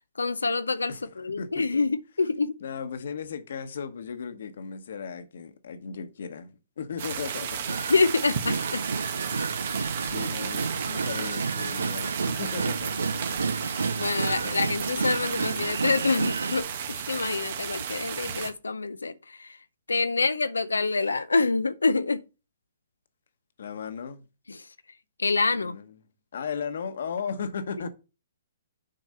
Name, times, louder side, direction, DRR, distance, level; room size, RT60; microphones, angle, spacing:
voice 1, 0.2-2.5 7.9-8.8 14.0-16.7 17.1-19.6 19.9-22.2 24.5-24.6 25.2-25.8, left 3 dB, 85° left, 0.5 m, -26 dB
voice 2, 0.9-1.8 2.6-7.8 10.1-13.5 14.4-14.6 23.6-24.2 25.5-26.0 26.3-27.9, left 6 dB, 65° left, 1.2 m, -36 dB
sound 1, 7.0-18.5, right 8 dB, 55° right, 1.2 m, -34 dB
sound 2, 7.7-16.6, right 4 dB, 85° right, 0.5 m, -31 dB
7.7 x 4.7 x 5.5 m
hypercardioid pair, 130°, 0 cm